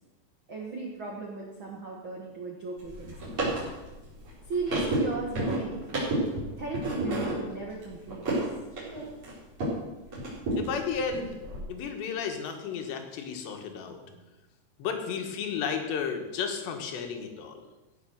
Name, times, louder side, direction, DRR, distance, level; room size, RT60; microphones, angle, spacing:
voice 1, 0.5-3.5 4.5-6.2 6.6-8.5 13.9-14.2, right 3 dB, 65° right, -1 dB, 1.2 m, -37 dB
sound 1, 2.8-9.8 10.1-11.6, right 1 dB, 35° right, 5.1 m, -31 dB
voice 2, 10.6-11.4 11.7-14.0 14.8-17.7, left 6 dB, 85° left, 4 dB, 3.6 m, -33 dB
16.5 x 6.9 x 6.4 m, 1.1 s
omnidirectional pair, 4.8 m